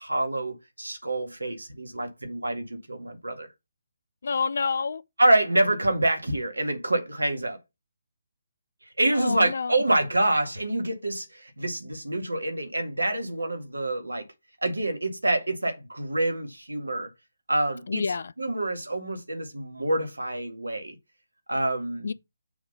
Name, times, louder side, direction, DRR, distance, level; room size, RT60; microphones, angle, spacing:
voice 1, 0.0-3.5 5.2-7.6 9.0-14.2 14.6-17.1 17.5-18.0 18.4-21.0 21.5-22.1, right 1 dB, 75° right, 2.0 m, -26 dB
voice 2, 4.2-5.0 9.1-9.7 17.9-18.3 22.0-22.1, left 5 dB, 55° left, 0.4 m, -28 dB
7.0 x 3.7 x 5.3 m
figure-of-eight pair, 140°, 0 cm